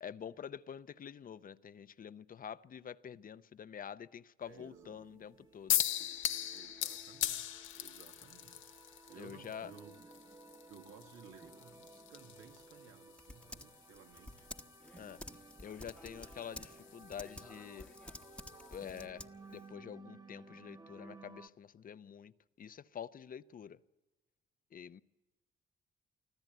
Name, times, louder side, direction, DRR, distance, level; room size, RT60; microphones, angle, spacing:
voice 1, 0.0-5.8 9.2-9.7 15.0-15.2 15.6-17.9 18.7-22.3 22.6-23.8 24.7-25.0, left 8 dB, 45° left, 0.7 m, -47 dB
voice 2, 4.4-4.9 6.5-8.8 9.1-9.9 10.7-14.5, right 7 dB, 85° right, 2.5 m, -57 dB
sound 1, 4.6-21.5, right 3 dB, 20° right, 1.3 m, -57 dB
sound 2, 5.7-19.0, left 11 dB, 85° left, 1.2 m, -41 dB
Typing, 12.3-19.7, left 1 dB, 5° left, 1.1 m, -52 dB
25.0 x 15.0 x 9.3 m
cardioid pair, 90°, 20 cm